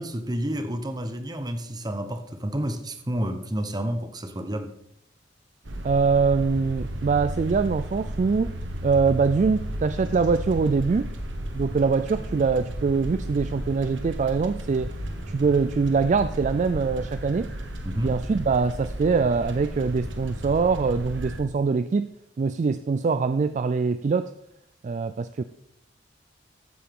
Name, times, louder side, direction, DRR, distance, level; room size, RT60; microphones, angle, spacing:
voice 1, 0.0-4.7 17.8-18.1, equal, 20° right, 1.0 m, -30 dB
sound 1, 5.6-21.4, right 1 dB, 90° right, 1.4 m, -34 dB
voice 2, 5.8-8.5 8.8-11.1 11.5-14.9 15.3-17.5 18.0-22.1 22.4-24.3 24.8-25.4, right 4 dB, 40° right, 0.3 m, -23 dB
14.5 x 8.6 x 3.6 m
head